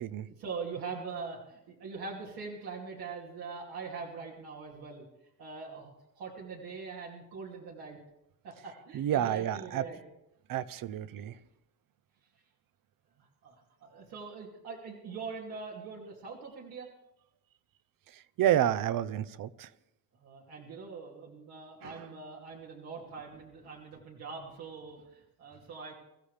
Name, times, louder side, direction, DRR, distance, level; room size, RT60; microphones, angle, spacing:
voice 1, 0.4-5.0 5.4-8.0 8.4-10.0 13.4-16.9 20.2-25.9, right 5 dB, 85° right, -3 dB, 2.8 m, -42 dB
voice 2, 8.9-9.8 10.5-11.3 18.4-19.7 21.8-22.0, right 11 dB, 65° right, 16 dB, 0.7 m, -29 dB
24.0 x 14.5 x 3.4 m, 0.88 s
cardioid pair, 155°, 37 cm